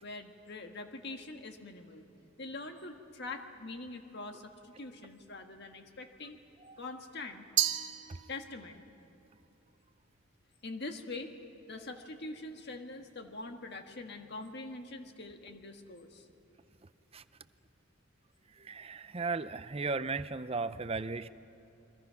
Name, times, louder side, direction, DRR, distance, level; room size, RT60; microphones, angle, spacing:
voice 1, 0.0-2.1 2.4-6.4 6.8-7.4 8.3-8.8 10.6-11.3 11.7-16.3, left 2 dB, 50° left, 5 dB, 1.6 m, -44 dB
Glass, 7.6-8.8, right 11 dB, 55° right, 1.0 m, -32 dB
voice 2, 18.6-21.3, right 4 dB, 30° right, 13 dB, 0.6 m, -36 dB
30.0 x 22.5 x 5.8 m, 2.9 s
head